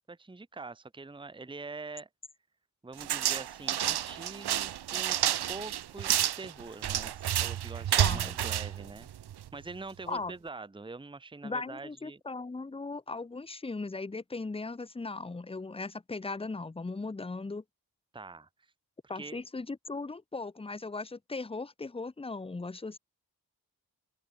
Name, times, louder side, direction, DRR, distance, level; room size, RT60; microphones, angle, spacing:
voice 1, 0.1-2.1 2.8-5.2 5.5-9.1 9.5-12.2 18.1-18.7 19.1-19.4, right 3 dB, 15° right, 0.7 m, -44 dB
sound 1, 3.0-9.6, right 11 dB, 85° right, 0.5 m, -30 dB
voice 2, 8.0-8.4 10.1-10.3 11.4-17.6 19.1-23.0, left 3 dB, 15° left, 0.5 m, -38 dB
open air
wide cardioid pair, 90°, 38 cm